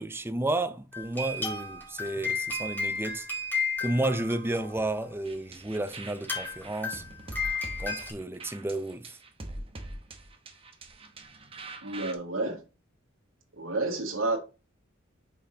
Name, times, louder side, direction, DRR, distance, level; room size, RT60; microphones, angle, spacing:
voice 1, 0.0-3.3 3.8-7.0 7.8-9.2, right 2 dB, 10° right, 0.5 m, -32 dB
sound 1, 0.9-5.1 5.8-5.9 6.1-8.1, left 4 dB, 10° left, 2.1 m, -33 dB
sound 2, 5.2-12.1, right 2 dB, 30° right, 0.9 m, -43 dB
voice 2, 11.8-12.6 13.6-14.4, right 2 dB, 75° right, 1.8 m, -30 dB
5.6 x 4.4 x 3.9 m
head